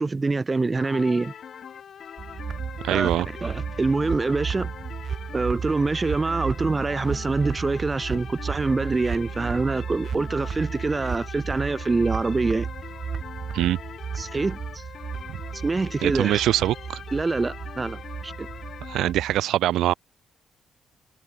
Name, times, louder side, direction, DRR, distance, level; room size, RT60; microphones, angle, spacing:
voice 1, 0.0-1.3 2.9-3.1 3.4-4.7 5.3-12.7 14.2-14.8 15.6-16.4 17.1-18.5, right 3 dB, 25° right, 1.2 m, -25 dB
sound 1, 0.7-19.1, left 8 dB, 55° left, 2.1 m, -42 dB
sound 2, 2.2-19.4, right 7 dB, 50° right, 2.1 m, -34 dB
voice 2, 2.8-3.3 13.5-13.8 15.3-15.4 16.0-17.0 18.9-19.9, right 13 dB, 80° right, 0.9 m, -23 dB
cardioid pair, 90°, 0 cm